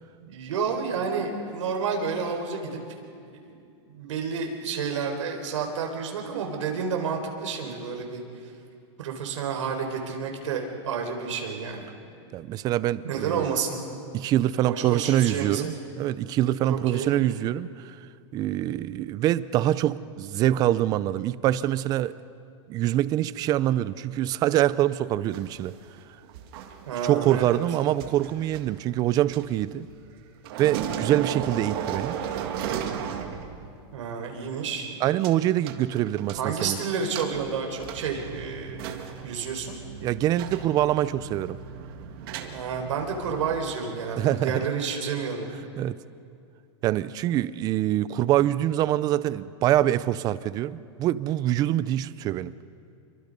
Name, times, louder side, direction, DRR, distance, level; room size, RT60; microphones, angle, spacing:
voice 1, 0.2-3.0 3.4-3.6 3.9-8.5 9.0-11.9 13.0-13.8 14.7-15.7 16.7-17.1 26.9-27.6 33.9-34.9 36.3-38.8 39.2-39.8 42.5-45.5, right 6 dB, 85° right, 3 dB, 4.3 m, -30 dB
voice 2, 12.3-13.5 14.1-18.0 18.3-22.2 22.7-25.8 27.0-29.9 30.6-32.2 35.0-36.8 40.0-41.6 44.2-44.7 45.8-46.0 46.8-52.5, right 13 dB, 25° right, 17 dB, 0.5 m, -25 dB
sound 1, 25.3-30.2 30.4-33.8 34.1-34.2 35.2-35.3 35.7-36.7 37.1-43.6, right 8 dB, 50° right, 1.9 m, -36 dB
28.0 x 24.0 x 5.3 m, 2.5 s
supercardioid pair, 155°, 16 cm